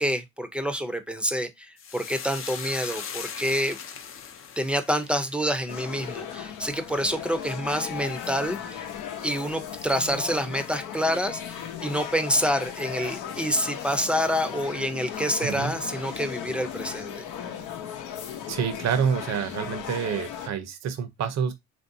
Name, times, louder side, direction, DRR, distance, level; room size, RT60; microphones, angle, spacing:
voice 1, 0.0-3.8 4.6-8.9 9.2-17.2, equal, 5° right, 0.5 m, -27 dB
sound 1, 1.8-10.4 10.7-11.3 11.6-11.9, left 7 dB, 45° left, 0.5 m, -42 dB
sound 2, 5.7-20.5, left 9 dB, 85° left, 0.7 m, -36 dB
voice 2, 18.5-21.5, right 7 dB, 60° right, 0.7 m, -27 dB
3.1 x 2.6 x 2.6 m
cardioid pair, 90°, 30 cm